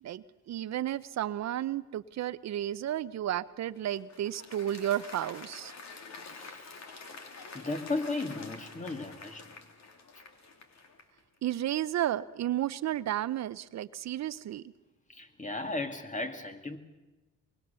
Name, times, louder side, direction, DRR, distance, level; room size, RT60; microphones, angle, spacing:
voice 1, 0.0-5.7 11.4-14.6, right 12 dB, 60° right, 0.7 m, -32 dB
Applause, 3.6-11.2, left 4 dB, 60° left, 3.0 m, -48 dB
voice 2, 6.2-6.8 7.1-7.3 7.5-9.6 15.1-16.8, left 2 dB, 25° left, 2.2 m, -36 dB
24.0 x 22.0 x 6.9 m
cardioid pair, 90°, 30 cm